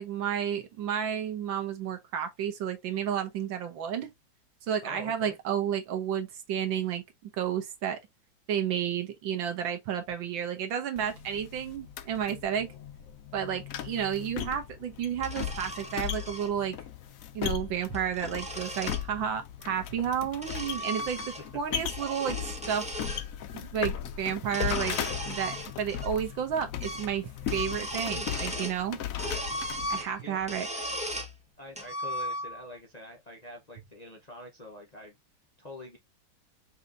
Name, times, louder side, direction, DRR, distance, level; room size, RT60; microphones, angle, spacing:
voice 1, 0.0-4.1 4.7-7.0 7.4-8.0 8.5-12.7 13.3-16.8 17.4-22.9 23.5-25.0 25.3-29.0 29.9-30.7, right 8 dB, 75° right, 1.6 m, -31 dB
voice 2, 4.8-5.4 30.2-30.4 31.6-35.1 35.6-36.0, left 1 dB, 65° left, 0.4 m, -45 dB
Footsteps on Attic Stairs, 11.0-30.0, left 10 dB, 90° left, 0.7 m, -37 dB
sound 1, 15.2-16.5 17.7-19.1 20.0-21.6 21.9-23.2 24.4-26.1 26.4-26.5 26.8-27.1 27.4-28.8 29.2-31.3 31.8-32.7, equal, 5° right, 0.5 m, -37 dB
5.6 x 2.8 x 2.5 m
omnidirectional pair, 2.1 m